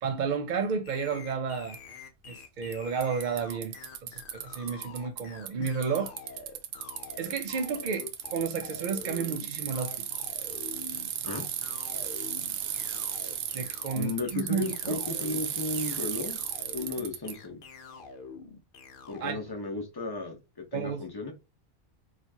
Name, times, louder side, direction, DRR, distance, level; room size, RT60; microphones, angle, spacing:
voice 1, 0.0-1.8 2.3-3.8 4.1-6.1 7.2-10.1 13.5-15.0 19.2-19.4 20.7-21.1, right 5 dB, 55° right, 0.6 m, -32 dB
sound 1, 0.8-19.3, left 5 dB, 55° left, 0.8 m, -46 dB
Bicycle, 1.7-1.8 2.7-2.8 3.0-5.2 5.5-17.3, right 9 dB, 85° right, 0.9 m, -35 dB
voice 2, 13.9-16.4 16.7-17.6 19.1-20.4 20.7-21.3, left 3 dB, 25° left, 0.8 m, -34 dB
4.3 x 2.5 x 2.7 m
omnidirectional pair, 1.1 m